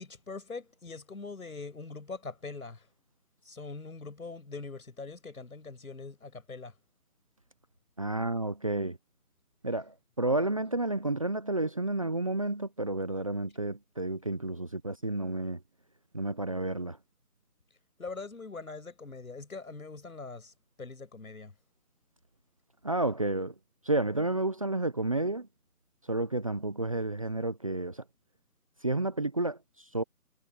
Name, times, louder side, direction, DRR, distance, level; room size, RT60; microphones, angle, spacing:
voice 1, 0.0-2.9 3.4-6.7 18.0-20.5 20.8-21.5, left 4 dB, 65° left, 6.6 m, -42 dB
voice 2, 8.0-9.0 9.6-15.6 16.1-17.0 22.8-23.5 23.8-25.5 26.1-28.0 28.8-30.0, right 2 dB, 20° right, 0.9 m, -31 dB
figure-of-eight pair, 165°, 46 cm